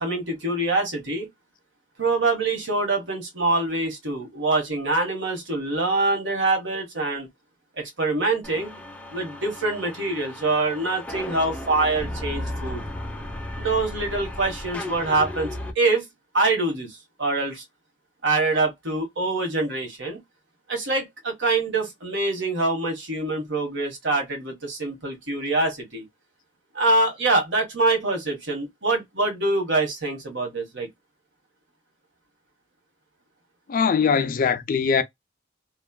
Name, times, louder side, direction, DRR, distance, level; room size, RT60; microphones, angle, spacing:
voice 1, 0.0-1.3 2.0-7.3 7.8-8.7 9.1-12.8 13.6-16.0 16.3-17.6 18.2-20.2 20.7-26.0 26.7-30.9, right 2 dB, 70° right, 1.4 m, -25 dB
sound 1, 8.4-15.7, left 1 dB, 10° left, 0.6 m, -35 dB
voice 2, 33.7-35.0, left 6 dB, 45° left, 0.4 m, -21 dB
3.1 x 2.3 x 2.2 m
head